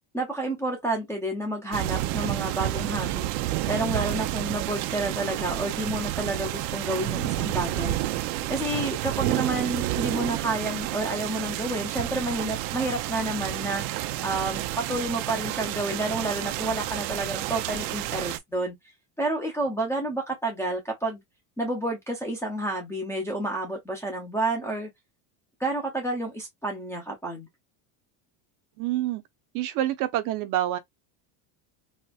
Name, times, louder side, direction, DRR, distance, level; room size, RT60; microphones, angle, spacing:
voice 1, 0.1-3.3 3.7-8.0 8.5-13.8 14.2-18.7 19.2-21.2 21.6-24.9 25.6-27.5, right 2 dB, 5° left, 0.4 m, -30 dB
sound 1, 1.7-18.4, right 15 dB, 90° right, 0.6 m, -30 dB
voice 2, 28.8-29.2 29.5-30.8, right 13 dB, 45° right, 0.6 m, -27 dB
4.2 x 2.1 x 2.3 m
cardioid pair, 160°, 47 cm